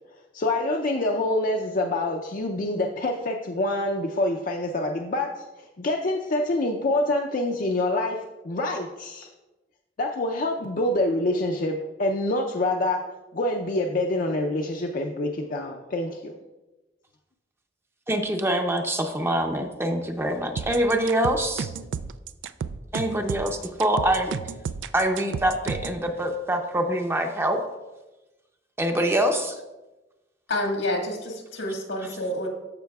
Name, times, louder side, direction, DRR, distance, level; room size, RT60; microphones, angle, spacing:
voice 1, 0.3-5.3 5.6-8.2 8.4-9.3 10.0-13.0 13.3-16.3, left 2 dB, 50° left, 1 dB, 0.5 m, -26 dB
voice 2, 18.1-21.7 22.9-24.3 24.9-27.6 28.8-29.6, right 1 dB, 15° right, 4 dB, 0.6 m, -25 dB
sound 1, 20.6-26.0, right 6 dB, 85° right, 0.3 m, -32 dB
voice 3, 30.5-32.5, left 1 dB, 85° left, 1 dB, 1.7 m, -28 dB
13.5 x 5.5 x 2.3 m, 1.1 s
head